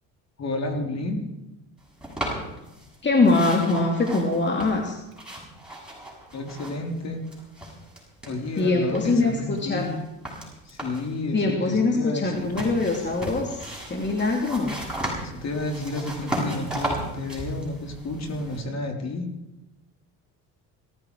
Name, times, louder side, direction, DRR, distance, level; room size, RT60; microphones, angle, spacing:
voice 1, 0.4-1.2 6.3-7.2 8.2-10.0 10.7-12.5 15.2-19.3, left 2 dB, 45° left, 3 dB, 3.7 m, -31 dB
sound 1, 2.0-3.0 3.2-7.0 7.2-8.6 8.9-11.1 12.3-18.6, right 1 dB, ahead, 7.8 m, -35 dB
voice 2, 3.0-5.0 8.6-9.9 11.3-14.8, left 3 dB, 30° left, 1 dB, 2.6 m, -23 dB
18.0 x 14.5 x 4.8 m, 0.97 s
supercardioid pair, 90°, 37 cm